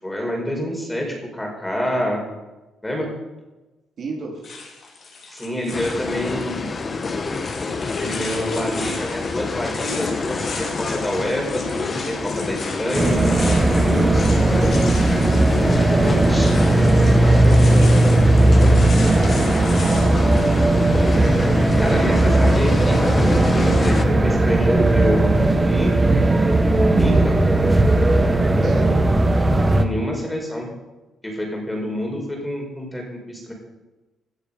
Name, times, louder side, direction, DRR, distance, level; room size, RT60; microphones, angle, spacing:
voice 1, 0.0-2.2 2.8-3.1 5.3-6.7 8.0-16.6 21.3-21.4 21.8-23.0 23.5-26.0 26.9-27.4 29.7-30.7 31.2-33.5, equal, 10° left, 0 dB, 5.0 m, -27 dB
voice 2, 4.0-4.5 17.2-21.3 28.6-29.0, right 3 dB, 55° right, -1 dB, 3.8 m, -35 dB
sound 1, 4.4-20.6, left 4 dB, 55° left, 4.3 m, -37 dB
sound 2, 5.7-24.0, left 4 dB, 35° left, 1.3 m, -28 dB
sound 3, 12.9-29.8, right 2 dB, 20° right, 1.4 m, -17 dB
17.5 x 10.5 x 5.4 m, 1.1 s
cardioid pair, 90°, 0 cm